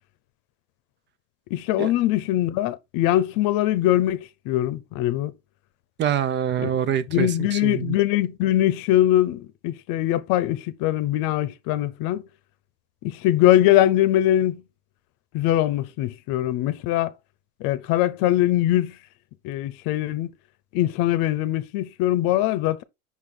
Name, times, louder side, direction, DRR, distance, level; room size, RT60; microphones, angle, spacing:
voice 1, 1.5-5.3 6.6-6.7 7.1-12.2 13.0-14.6 15.3-17.1 17.6-19.0 19.4-20.3 20.7-22.8, left 13 dB, 55° left, 0.8 m, -22 dB
voice 2, 6.0-8.0, right 9 dB, 25° right, 0.5 m, -25 dB
5.8 x 4.5 x 3.7 m
supercardioid pair, 130°, 41 cm